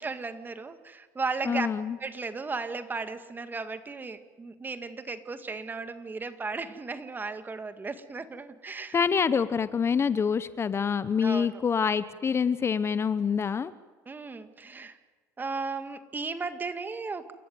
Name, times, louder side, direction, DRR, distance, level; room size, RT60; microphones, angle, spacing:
voice 1, 0.0-1.7 2.0-9.0 11.2-11.6 14.1-15.0 15.4-17.3, right 4 dB, 25° right, 10 dB, 1.9 m, -35 dB
voice 2, 1.5-2.0 8.9-13.7, left 6 dB, 30° left, 15 dB, 0.8 m, -26 dB
28.5 x 14.0 x 9.5 m, 1.4 s
supercardioid pair, 85°, 8 cm